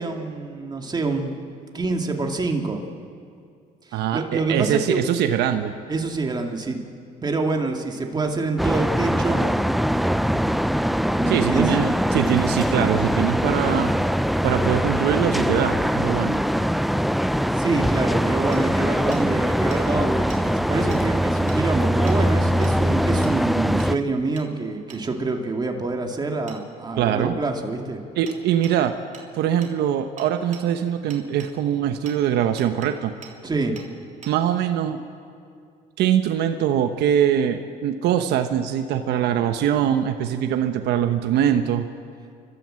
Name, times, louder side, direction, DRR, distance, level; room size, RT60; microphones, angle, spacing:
voice 1, 0.0-1.3 1.7-2.9 3.9-5.0 5.9-6.8 7.2-9.4 11.2-11.7 17.5-28.0 33.4-33.8, right 3 dB, 25° right, 3 dB, 2.5 m, -26 dB
voice 2, 3.9-5.7 11.3-13.9 14.4-16.4 27.0-27.3 28.1-28.9 29.3-33.1 34.3-35.0 36.0-41.9, right 9 dB, 80° right, 7 dB, 1.1 m, -22 dB
sound 1, 8.6-23.9, equal, ahead, 0.5 m, -22 dB
Hammer, 18.5-18.6 19.1-19.2 19.7-19.8 20.3-20.4 20.9-21.0 21.5-21.6 22.1-22.2 22.6-22.8 23.2-23.4 23.8-23.9 24.4-24.5 24.9-25.0 26.5-26.6 28.3-28.4 28.6-28.8 29.1-29.3 29.6-29.7 30.2-30.6 31.1-31.5 32.1-32.2 32.6-32.9 33.2-33.3 33.8-33.9 34.2-34.3, right 6 dB, 45° right, 3.0 m, -43 dB
29.5 x 13.0 x 7.7 m, 2.3 s
cardioid pair, 110°, 17 cm